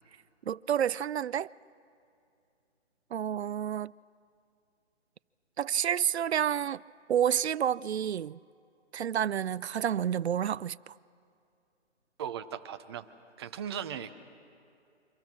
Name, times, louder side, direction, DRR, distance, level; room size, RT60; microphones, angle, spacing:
voice 1, 0.5-1.5 3.1-3.9 5.6-6.8 7.1-8.4 8.9-10.9, right 9 dB, 65° right, 0.5 m, -29 dB
voice 2, 12.2-13.1 13.4-14.1, right 9 dB, 20° right, 0.8 m, -37 dB
28.5 x 25.0 x 6.1 m
figure-of-eight pair, 145°, 36 cm